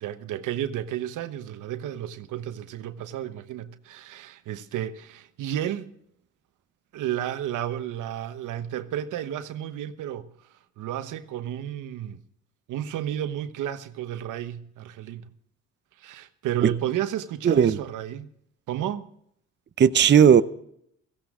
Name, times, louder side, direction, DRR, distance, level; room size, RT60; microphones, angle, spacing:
voice 1, 0.0-5.9 6.9-10.3 10.8-12.2 12.7-15.3 16.0-18.3 18.7-19.1, right 11 dB, 85° right, 1.1 m, -32 dB
voice 2, 17.4-17.8 19.8-20.4, right 8 dB, 35° right, 0.7 m, -16 dB
16.5 x 16.0 x 3.7 m
cardioid pair, 90°, 30 cm